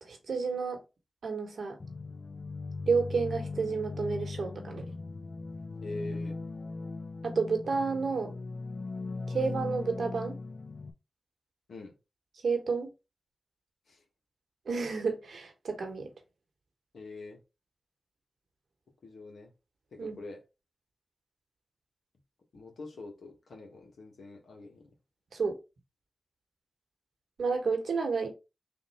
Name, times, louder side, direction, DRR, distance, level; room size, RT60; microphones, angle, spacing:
voice 1, 0.0-0.8 1.2-1.8 2.9-4.9 7.2-8.4 9.3-10.3 12.4-12.9 14.7-16.1 20.0-20.2 25.3-25.6 27.4-28.3, right 4 dB, 80° right, 1.1 m, -31 dB
sound 1, 1.8-10.9, left 3 dB, 55° left, 0.5 m, -39 dB
voice 2, 5.8-6.4 11.7-11.9 13.9-14.0 16.9-17.4 19.0-19.5 19.9-20.4 22.5-24.9, left 2 dB, 90° left, 1.1 m, -44 dB
3.6 x 2.6 x 4.2 m
cardioid pair, 45°, 0 cm